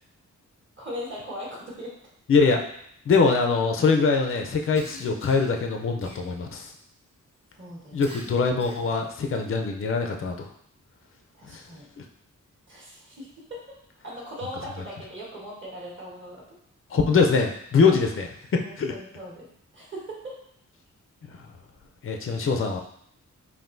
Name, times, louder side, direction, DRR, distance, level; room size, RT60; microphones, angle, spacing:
voice 1, 0.8-1.9 4.9-5.2 7.5-8.1 11.4-11.9 12.7-13.6 14.0-16.6 17.8-18.0 18.6-19.5 19.7-20.4 21.3-21.4, equal, 35° right, -5 dB, 1.5 m, -39 dB
voice 2, 2.3-2.6 3.1-6.7 7.9-10.5 16.9-18.9 22.0-22.8, left 4 dB, 40° left, 3 dB, 0.5 m, -23 dB
Cough, 4.8-5.6 6.0-6.6 8.0-9.0, right 1 dB, 15° right, 0.8 m, -45 dB
5.4 x 2.6 x 2.6 m, 0.69 s
wide cardioid pair, 100°, 32 cm